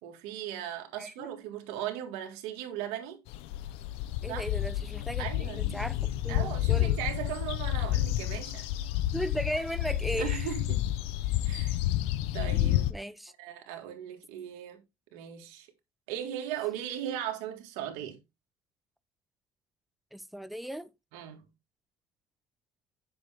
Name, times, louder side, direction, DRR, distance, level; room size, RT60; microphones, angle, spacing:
voice 1, 0.0-3.2 4.3-4.4 5.2-5.7 6.3-8.6 10.1-10.8 11.4-11.8 12.3-12.9 13.4-14.8 15.1-15.7 16.1-18.2 21.1-21.4, right 11 dB, 90° right, 1.7 m, -38 dB
voice 2, 1.0-1.3 4.2-7.0 9.1-10.5 12.9-13.3 20.1-20.9, equal, ahead, 0.6 m, -36 dB
sound 1, 3.3-12.9, left 13 dB, 85° left, 0.6 m, -30 dB
7.9 x 6.0 x 3.4 m
cardioid pair, 100°, 10 cm